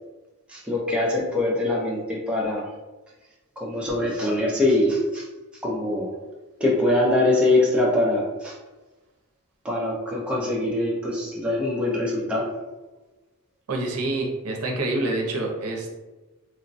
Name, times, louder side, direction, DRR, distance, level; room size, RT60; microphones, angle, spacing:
voice 1, 0.5-2.6 3.6-5.2 5.6-6.1 6.6-8.5 9.6-12.5, left 1 dB, 5° right, -4 dB, 0.4 m, -23 dB
voice 2, 13.7-15.9, right 2 dB, 80° right, 0 dB, 0.6 m, -27 dB
3.1 x 2.1 x 2.6 m, 1.1 s
head